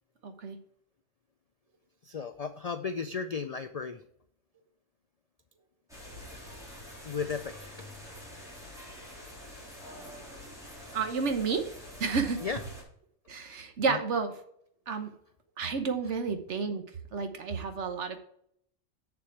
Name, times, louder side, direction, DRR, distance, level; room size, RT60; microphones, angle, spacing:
voice 1, 0.2-0.6 10.9-11.7 12.0-12.4 13.3-14.3 14.9-15.1 15.6-16.8 17.1-18.2, right 5 dB, 65° right, 7 dB, 1.3 m, -30 dB
voice 2, 2.0-4.0 7.0-7.9 12.4-12.6 13.9-14.0, left 5 dB, 80° left, 8 dB, 0.3 m, -35 dB
sound 1, 5.9-12.8, left 1 dB, ahead, 3.2 m, -46 dB
7.0 x 6.9 x 4.6 m, 0.69 s
omnidirectional pair, 1.3 m